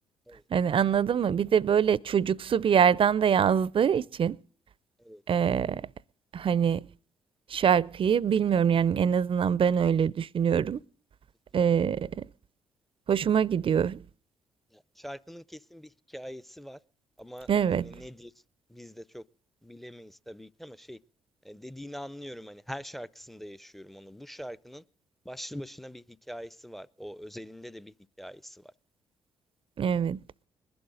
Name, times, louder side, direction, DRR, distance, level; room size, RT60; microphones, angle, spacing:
voice 1, 0.5-4.4 5.3-5.9 6.3-6.9 7.5-10.8 11.5-12.3 13.1-14.0 17.5-18.0 29.8-30.2, right 8 dB, 45° right, 0.5 m, -24 dB
voice 2, 15.0-15.4 15.7-16.8 17.2-17.5 17.9-18.3 18.7-19.2 19.6-21.0 21.5-24.8 25.3-27.9 28.2-28.4, equal, ahead, 0.6 m, -43 dB
21.0 x 11.5 x 3.8 m
hypercardioid pair, 45°, 13 cm